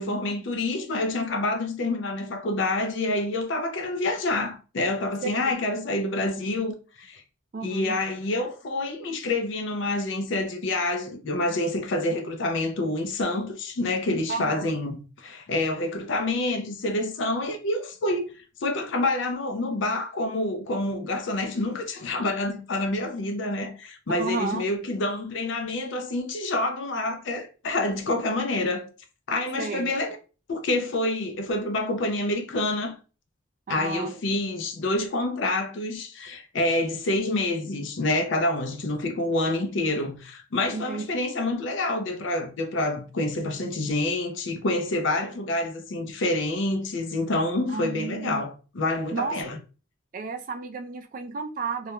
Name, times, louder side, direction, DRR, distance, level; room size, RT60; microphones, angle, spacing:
voice 1, 0.0-7.2 7.6-18.3 18.6-28.9 29.3-30.2 30.5-32.9 33.7-49.6, left 2 dB, 65° left, 0.5 m, -27 dB
voice 2, 7.5-8.0 14.3-14.7 24.2-24.6 29.6-29.9 33.7-34.1 40.7-41.1 47.7-48.4 49.1-49.3 50.1-51.9, right 4 dB, 40° right, 0.3 m, -32 dB
2.3 x 2.1 x 2.9 m
head